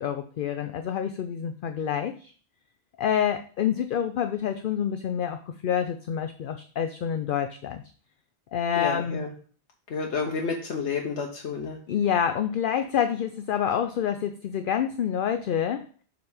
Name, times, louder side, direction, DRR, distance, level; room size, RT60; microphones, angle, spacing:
voice 1, 0.0-2.3 3.0-7.8 8.5-9.2 11.9-15.8, left 8 dB, 60° left, 8 dB, 0.6 m, -27 dB
voice 2, 8.8-9.3 9.9-11.8, left 5 dB, 85° left, 1 dB, 1.2 m, -30 dB
7.0 x 4.1 x 4.9 m, 0.43 s
omnidirectional pair, 1.1 m